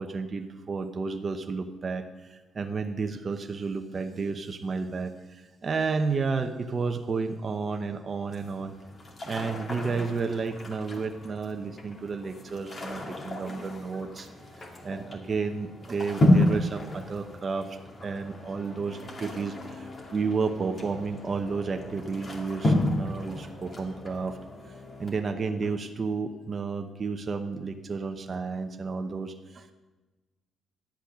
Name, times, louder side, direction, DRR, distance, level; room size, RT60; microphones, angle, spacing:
voice 1, 0.0-8.7 9.2-14.3 14.6-24.4 25.0-29.7, right 4 dB, 40° right, 5 dB, 0.9 m, -32 dB
sound 1, 8.3-25.1, left 1 dB, 40° left, 2.4 m, -31 dB
11.5 x 8.1 x 6.2 m, 1.2 s
cardioid pair, 90°, 0 cm